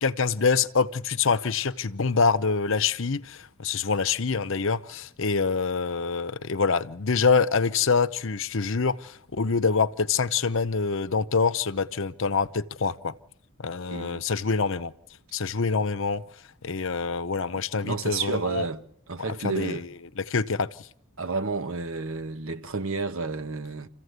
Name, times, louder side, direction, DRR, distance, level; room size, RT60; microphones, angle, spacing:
voice 1, 0.0-13.1 13.6-14.9 15.3-16.2 16.6-18.7 19.4-19.8 20.2-20.7, left 5 dB, 60° left, 0.8 m, -25 dB
voice 2, 13.9-14.2 17.5-19.8 21.2-23.9, right 4 dB, 65° right, 1.4 m, -31 dB
27.0 x 15.5 x 8.1 m
head